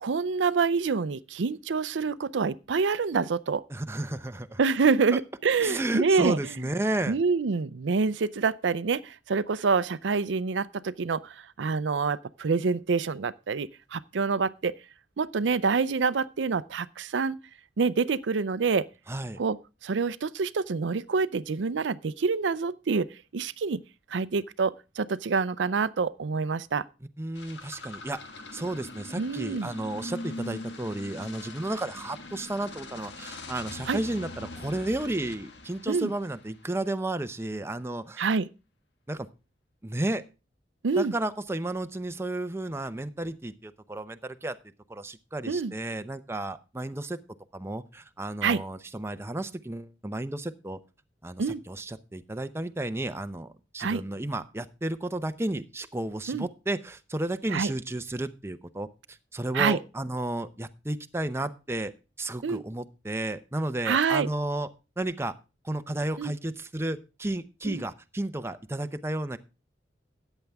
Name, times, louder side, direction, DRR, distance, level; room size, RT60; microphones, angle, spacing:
voice 1, 0.0-3.6 4.6-6.4 7.1-14.8 15.2-17.4 17.8-18.9 19.4-19.6 19.8-23.1 23.3-23.8 24.1-26.8 29.2-29.7 33.9-34.0 35.9-36.1 38.2-38.5 40.8-41.1 45.5-45.7 48.4-48.6 51.4-51.6 53.8-54.0 56.3-56.5 57.5-57.7 59.5-59.8 62.4-62.6 63.9-64.3 66.2-66.3 67.6-67.8, right 5 dB, 90° right, 0.5 m, -26 dB
voice 2, 3.7-4.6 5.1-5.2 5.6-7.2 19.1-19.4 27.2-28.2 28.5-38.3 39.1-39.3 39.8-40.2 41.0-44.6 44.9-47.2 47.5-50.8 51.2-61.9 62.2-64.7 65.0-65.3 65.6-69.4, right 1 dB, 15° right, 0.7 m, -32 dB
sound 1, 27.3-36.9, left 2 dB, 75° left, 1.7 m, -42 dB
13.5 x 9.1 x 3.5 m
head